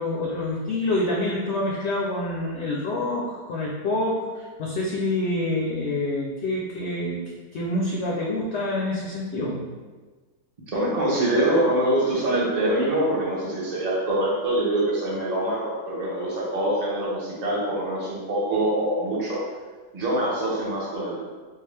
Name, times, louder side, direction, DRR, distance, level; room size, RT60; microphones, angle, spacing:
voice 1, 0.0-7.2 7.5-9.6, left 2 dB, 65° left, -4 dB, 0.8 m, -27 dB
voice 2, 10.7-19.4 19.9-21.2, right 1 dB, 35° right, -5 dB, 0.7 m, -24 dB
3.7 x 2.4 x 3.2 m, 1.3 s
omnidirectional pair, 1.5 m